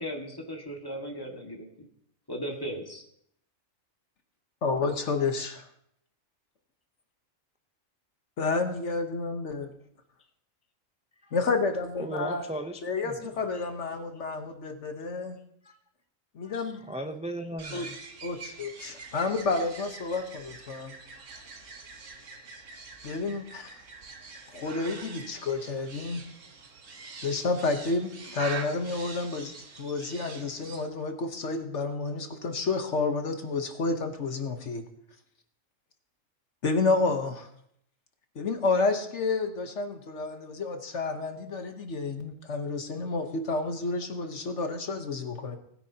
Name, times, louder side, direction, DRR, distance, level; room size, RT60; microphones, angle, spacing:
voice 1, 0.0-1.7 2.3-3.0, equal, 15° left, 1.9 m, -36 dB
voice 2, 4.6-5.7 8.4-9.7 11.3-12.4 12.8-15.4 16.3-16.8 17.7-17.9 18.2-20.9 23.0-23.7 24.5-26.2 27.2-34.8 36.6-37.5 38.3-45.6, left 3 dB, 60° left, 1.4 m, -30 dB
voice 3, 12.0-13.2 13.5-13.6 15.6-15.7 16.4-16.5 16.9-18.0, right 1 dB, 10° right, 0.4 m, -36 dB
sound 1, 17.6-30.8, right 4 dB, 70° right, 1.6 m, -44 dB
19.5 x 9.6 x 2.8 m
omnidirectional pair, 1.4 m